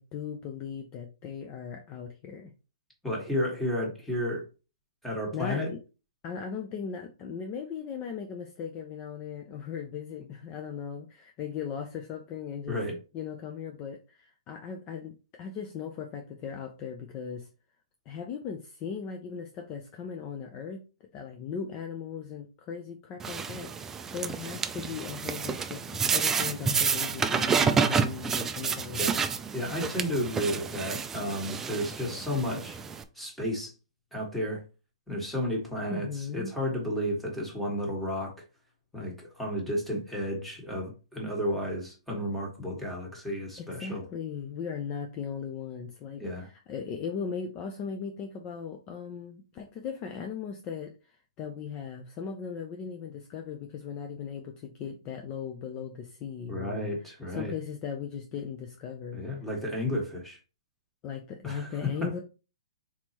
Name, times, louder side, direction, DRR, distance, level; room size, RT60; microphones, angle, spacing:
voice 1, 0.0-2.5 5.3-5.8 6.2-12.8 13.1-17.5 18.1-20.8 21.1-29.3 35.9-36.5 43.7-50.9 51.4-59.4 61.0-62.2, left 7 dB, 30° left, 0.6 m, -38 dB
voice 2, 3.0-4.4 5.0-5.7 12.7-13.0 29.0-29.2 29.5-32.8 33.2-33.7 34.1-34.6 35.1-36.1 36.3-38.3 38.9-44.0 46.2-46.5 56.5-57.5 59.1-60.4 61.4-62.2, equal, 5° left, 1.7 m, -32 dB
sound 1, 23.2-33.0, right 5 dB, 15° right, 0.4 m, -29 dB
4.4 x 4.1 x 2.9 m
hypercardioid pair, 135°, 3 cm